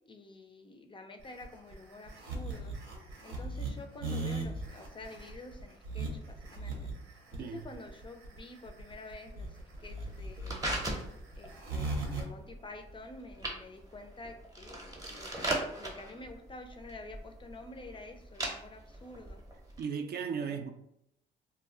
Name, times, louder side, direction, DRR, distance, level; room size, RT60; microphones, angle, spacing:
voice 1, 0.1-2.7 3.2-6.9 7.3-9.5 9.8-10.7 11.4-19.4 20.4-20.6, left 2 dB, 25° left, 0.4 m, -49 dB
sound 1, 1.2-12.2, right 3 dB, 90° right, 0.8 m, -38 dB
sound 2, 9.8-19.8, right 1 dB, 20° right, 0.7 m, -40 dB
voice 2, 19.8-20.7, right 6 dB, 55° right, 0.4 m, -36 dB
2.3 x 2.1 x 3.6 m
cardioid pair, 90°, 20 cm